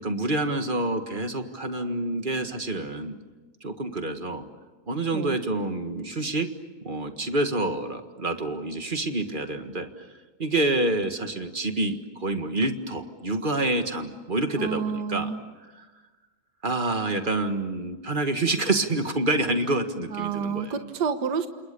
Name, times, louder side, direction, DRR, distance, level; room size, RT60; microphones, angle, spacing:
voice 1, 0.0-3.2 3.6-4.4 4.9-6.5 6.8-9.9 10.4-15.3 15.7-15.8 16.6-20.7, right 2 dB, 30° right, 7 dB, 1.8 m, -27 dB
voice 2, 14.6-15.4 20.1-21.5, right 6 dB, 70° right, 8 dB, 1.9 m, -29 dB
30.0 x 27.5 x 6.9 m, 1.3 s
omnidirectional pair, 1.9 m